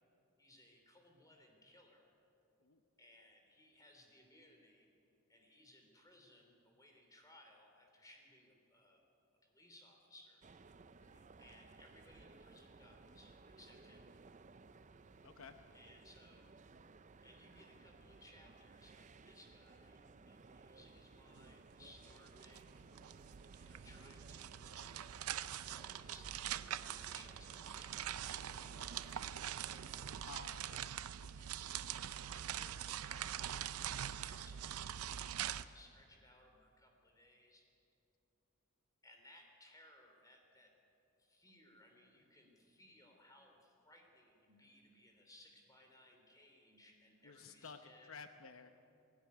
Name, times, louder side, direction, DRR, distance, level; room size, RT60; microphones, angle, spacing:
voice 1, 0.4-2.1 3.0-4.9 5.3-9.0 9.4-10.4 11.4-14.0 15.7-16.5 17.2-22.8 23.6-25.0 25.4-30.4 31.4-33.4 33.8-37.7 39.0-40.7 41.2-48.2, left 1 dB, 15° left, 2 dB, 3.4 m, -64 dB
sound 1, 10.4-30.2, right 3 dB, 35° right, 0.5 m, -60 dB
voice 2, 15.2-15.6 30.2-30.9 47.2-48.7, left 5 dB, 70° left, 8 dB, 0.8 m, -54 dB
sound 2, 21.4-21.5 21.7-35.6, right 10 dB, 85° right, 0.6 m, -44 dB
19.5 x 16.5 x 9.6 m, 2.7 s
head